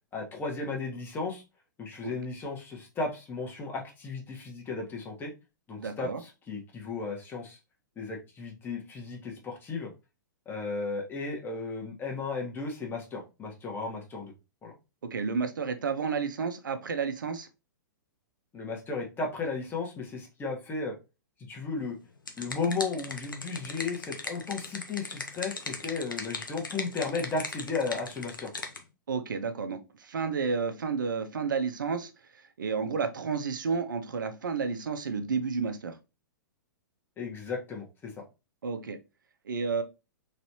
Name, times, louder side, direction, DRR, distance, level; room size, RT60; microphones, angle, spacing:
voice 1, 0.1-1.4 1.8-5.3 5.7-7.6 7.9-9.9 10.4-14.3 14.6-14.7 18.5-21.0 21.4-22.0 22.4-28.5 37.2-38.2, left 4 dB, 20° left, 1.3 m, -35 dB
voice 2, 5.8-6.2 15.0-17.5 29.1-32.1 32.6-35.9 38.6-39.0 39.5-39.8, right 5 dB, 75° right, 0.7 m, -31 dB
sound 1, 21.9-28.8, left 3 dB, 90° left, 0.8 m, -39 dB
4.0 x 3.3 x 2.8 m
figure-of-eight pair, 110°, 11 cm